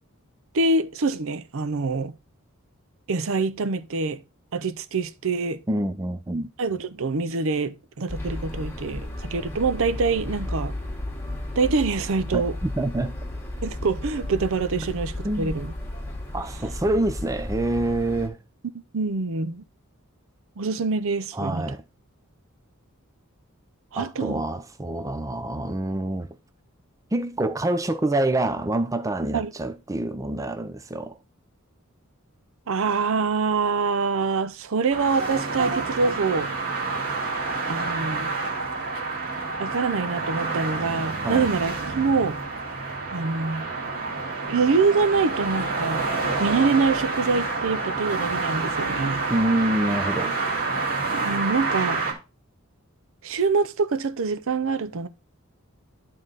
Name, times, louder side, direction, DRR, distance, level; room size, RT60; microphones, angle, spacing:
voice 1, 0.5-2.1 3.1-4.2 4.5-5.6 6.6-10.7 11.6-12.5 13.6-15.7 18.9-19.6 20.6-21.7 23.9-24.4 29.3-29.5 32.7-36.5 37.7-38.3 39.6-42.4 43.1-43.7 44.5-46.1 46.4-49.2 51.2-52.0 53.2-55.1, right 4 dB, 65° right, 0.6 m, -25 dB
voice 2, 5.7-6.5 12.3-13.2 15.2-15.5 16.3-18.4 21.3-21.8 24.0-26.3 27.1-31.2 41.2-41.5 49.3-50.5, right 1 dB, 15° right, 0.4 m, -26 dB
sound 1, 8.1-18.3, left 1 dB, 10° left, 1.6 m, -34 dB
sound 2, 34.9-52.1, right 3 dB, 45° right, 2.0 m, -28 dB
11.0 x 3.8 x 3.9 m
head